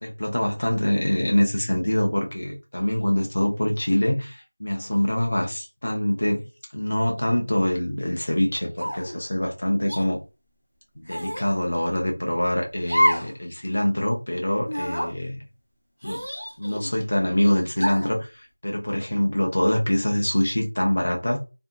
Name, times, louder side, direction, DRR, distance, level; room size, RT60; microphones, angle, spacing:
voice 1, 0.0-6.5 6.7-10.2 11.0-15.4 16.0-16.2 16.6-21.4, left 1 dB, 25° left, 0.4 m, -24 dB
sound 1, 8.8-9.2 9.9-10.0 11.1-11.5 12.8-13.3 13.7-13.8 14.6-15.1 16.0-16.9 17.8-18.2, equal, 10° right, 1.4 m, -27 dB
2.6 x 2.5 x 2.5 m
figure-of-eight pair, 180°, 0 cm